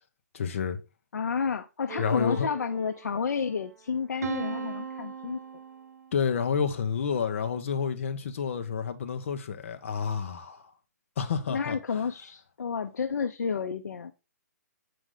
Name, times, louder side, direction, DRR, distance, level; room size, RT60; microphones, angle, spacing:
voice 1, 0.3-0.8 2.0-2.5 6.1-10.6 11.2-11.8, left 6 dB, 45° left, 1.0 m, -29 dB
voice 2, 1.1-5.4 11.5-14.1, left 6 dB, 85° left, 0.8 m, -31 dB
sound 1, 1.9-3.5 4.2-6.2, right 7 dB, 65° right, 0.9 m, -39 dB
7.7 x 4.8 x 3.8 m
hypercardioid pair, 170°, 9 cm